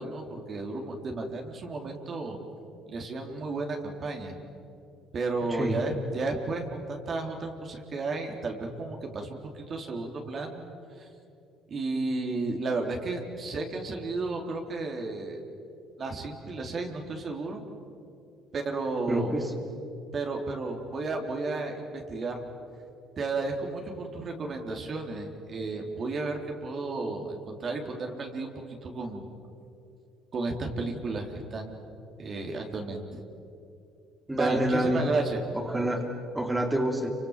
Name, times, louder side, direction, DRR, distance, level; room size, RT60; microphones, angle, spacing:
voice 1, 0.0-2.4 2.9-4.4 5.1-10.6 10.9-11.1 11.7-15.4 16.0-17.6 18.5-19.3 20.1-22.4 23.2-28.5 28.8-29.3 30.3-31.7 32.2-33.0 34.4-35.4, right 3 dB, 45° right, 2 dB, 3.7 m, -33 dB
voice 2, 5.5-5.8 19.1-19.5 34.3-35.1 35.5-37.1, right 1 dB, 10° right, 3 dB, 3.2 m, -27 dB
29.0 x 25.0 x 7.4 m, 2.7 s
hypercardioid pair, 65°, 0 cm